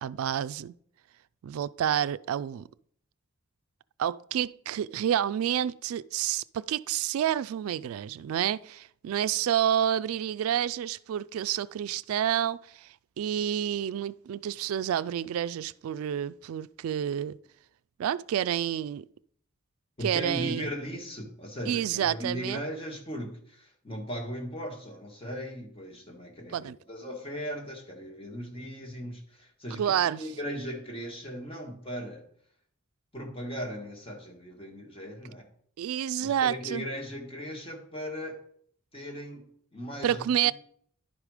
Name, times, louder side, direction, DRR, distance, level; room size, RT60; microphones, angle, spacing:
voice 1, 0.0-0.7 1.4-2.7 4.0-17.4 18.0-19.0 20.0-20.7 21.7-22.6 26.5-26.8 29.8-30.2 35.8-36.9 40.0-40.5, right 10 dB, 85° right, 0.3 m, -29 dB
voice 2, 20.0-29.8 30.2-32.3 33.1-35.4 36.2-38.4 38.9-40.5, equal, 25° left, 1.8 m, -38 dB
11.0 x 5.1 x 4.9 m
head